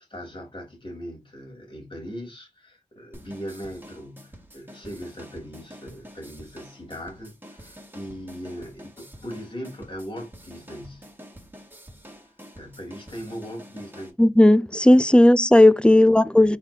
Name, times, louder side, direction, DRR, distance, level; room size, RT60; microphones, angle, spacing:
voice 1, 0.1-11.1 12.6-14.2 16.0-16.6, equal, 40° left, 2.8 m, -39 dB
sound 1, 3.1-14.1, equal, 15° right, 1.8 m, -47 dB
voice 2, 14.2-16.6, left 1 dB, 10° left, 0.3 m, -15 dB
4.5 x 3.9 x 2.8 m
wide cardioid pair, 60°, 13 cm